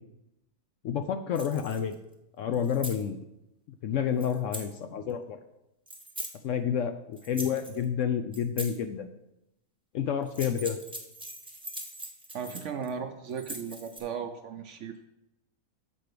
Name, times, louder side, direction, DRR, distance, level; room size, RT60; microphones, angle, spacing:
voice 1, 0.8-2.0 2.4-3.2 3.8-5.4 6.4-9.1 9.9-10.8, left 8 dB, 65° left, 8 dB, 0.8 m, -29 dB
sound 1, 1.4-1.9 2.5-3.0 4.2-4.7 5.9-6.3 7.2-7.8 8.3-8.8 10.2-12.9 13.3-14.0, right 1 dB, 5° right, 0.7 m, -41 dB
voice 2, 12.3-15.1, right 6 dB, 65° right, 7 dB, 0.8 m, -36 dB
7.5 x 4.5 x 6.6 m, 0.86 s
omnidirectional pair, 1.6 m